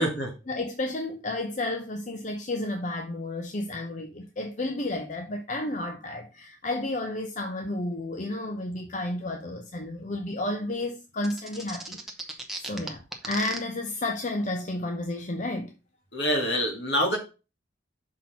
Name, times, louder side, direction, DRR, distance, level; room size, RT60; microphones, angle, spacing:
voice 1, 0.5-12.0 12.6-15.7, left 2 dB, 40° left, 0.7 m, -32 dB
sound 1, 11.2-13.6, right 2 dB, ahead, 0.9 m, -35 dB
voice 2, 16.1-17.2, equal, 65° left, 2.2 m, -25 dB
5.9 x 4.3 x 5.6 m
head